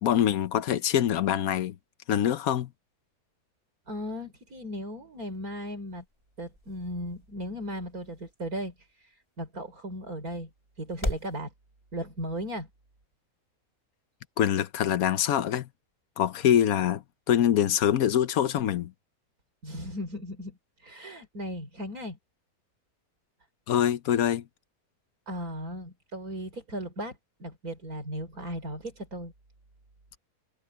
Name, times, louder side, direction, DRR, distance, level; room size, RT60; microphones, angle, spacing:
voice 1, 0.0-1.7 2.1-2.7 14.4-15.7 16.2-18.9 23.7-24.4, left 10 dB, 75° left, 1.2 m, -24 dB
voice 2, 3.9-6.0 6.4-10.5 10.8-11.5 11.9-12.7 19.6-22.2 25.3-29.3, equal, 75° right, 5.0 m, -37 dB
sound 1, 5.1-11.4, left 1 dB, 20° left, 3.7 m, -41 dB
omnidirectional pair, 1.6 m